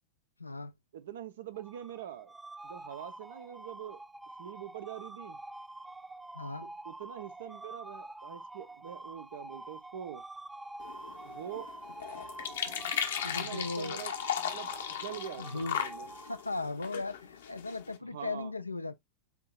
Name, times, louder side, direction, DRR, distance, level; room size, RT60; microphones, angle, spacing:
voice 1, 0.4-0.7 6.3-6.7 13.2-14.0 15.4-15.9 16.3-18.9, left 3 dB, 85° left, 0.5 m, -37 dB
voice 2, 0.9-2.3 2.6-4.0 4.4-5.4 6.6-10.2 11.2-11.7 13.2-16.1 18.1-18.5, right 10 dB, 60° right, 0.6 m, -44 dB
sound 1, 1.5-16.8, right 2 dB, 5° right, 0.3 m, -47 dB
sound 2, 10.8-18.0, left 8 dB, 65° left, 0.8 m, -37 dB
8.1 x 2.8 x 2.3 m
figure-of-eight pair, 90°, 0 cm